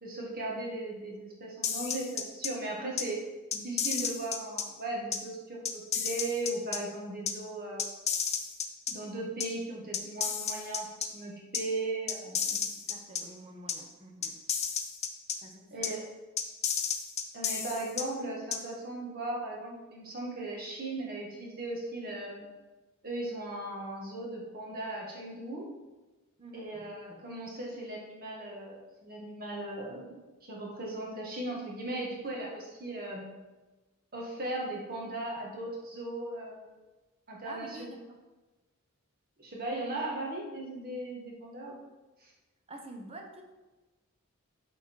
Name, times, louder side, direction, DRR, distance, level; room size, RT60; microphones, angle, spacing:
voice 1, 0.0-3.2 3.5-7.9 8.9-12.5 15.7-16.0 17.3-22.5 23.0-25.7 26.5-33.4 34.1-36.7 37.3-37.9 39.4-41.8 42.2-42.3, right 2 dB, 45° right, -2 dB, 2.0 m, -37 dB
sound 1, 1.6-2.5 3.0-3.1 3.5-4.6 5.1-5.2 5.6-6.8 7.3-7.4 7.8-8.9 9.4-9.5 9.9-11.1 11.5-11.6 12.1-13.2 13.7-13.8 14.2-15.3 15.8-15.9 16.4-18.0 18.5-18.6, left 7 dB, 30° left, 0.7 m, -31 dB
voice 2, 12.5-14.4 15.4-15.9 26.4-26.9 37.4-38.2 40.1-40.2 42.7-43.4, right 1 dB, 25° right, 3 dB, 1.1 m, -48 dB
12.0 x 4.5 x 4.7 m, 1.2 s
head